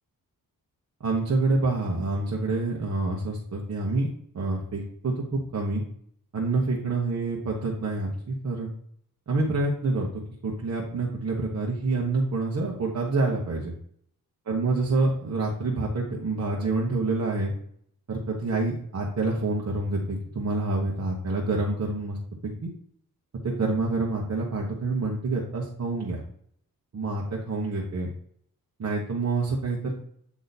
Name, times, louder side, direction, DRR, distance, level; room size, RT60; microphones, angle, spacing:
voice 1, 1.0-4.1 4.3-5.8 6.3-8.7 9.3-10.1 10.4-13.7 14.5-17.5 18.1-22.2 22.6-22.7 23.4-26.2 26.9-28.1 28.8-29.9, right 3 dB, 50° right, -3 dB, 1.2 m, -27 dB
8.1 x 3.0 x 4.1 m, 0.64 s
cardioid pair, 95°, 36 cm